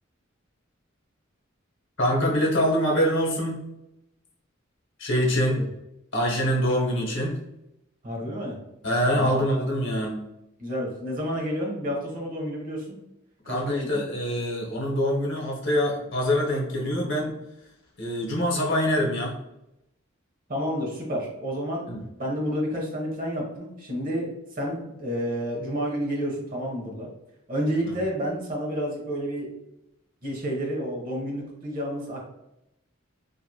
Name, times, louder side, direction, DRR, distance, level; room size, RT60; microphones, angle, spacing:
voice 1, 2.0-3.7 5.0-5.6 6.1-7.4 8.8-10.2 13.5-17.3 18.0-19.4 21.9-22.0, equal, 60° left, -2 dB, 0.8 m, -24 dB
voice 2, 8.0-8.6 9.1-9.4 10.6-13.0 13.5-14.0 20.5-21.9 22.2-27.1 27.5-29.5 30.2-32.3, equal, 40° right, -2 dB, 0.8 m, -30 dB
2.9 x 2.6 x 2.3 m, 0.87 s
head